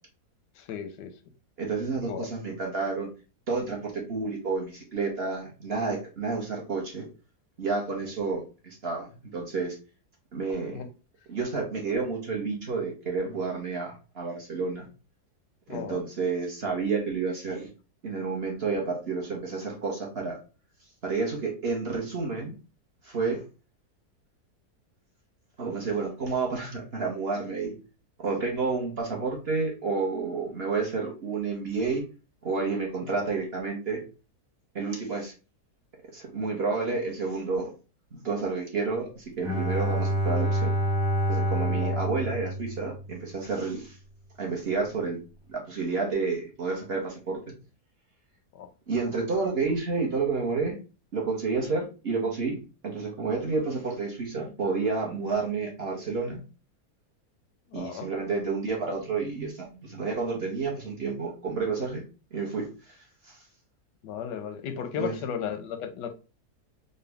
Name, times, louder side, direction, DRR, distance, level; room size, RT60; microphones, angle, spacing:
voice 1, 0.6-1.1 2.0-2.3 8.0-8.1 10.7-10.9 15.7-16.0 33.0-33.1 41.6-42.0 48.5-48.7 57.7-58.1 64.0-66.1, left 8 dB, 90° left, 1.3 m, -35 dB
voice 2, 1.6-3.1 3.5-7.0 7.6-9.8 10.3-10.8 11.3-14.9 15.7-17.7 18.0-20.4 21.0-22.5 23.0-23.4 25.6-27.7 28.2-32.0 32.4-34.0 34.7-35.3 36.1-37.7 38.1-40.7 41.3-44.0 44.4-45.2 45.5-47.4 48.9-50.8 51.1-52.6 52.8-56.4 57.7-63.0 63.3-63.4 65.0-65.1, right 4 dB, 45° right, 1.0 m, -30 dB
Bowed string instrument, 39.4-43.4, right 1 dB, 5° right, 0.7 m, -27 dB
3.9 x 2.2 x 3.3 m
omnidirectional pair, 1.7 m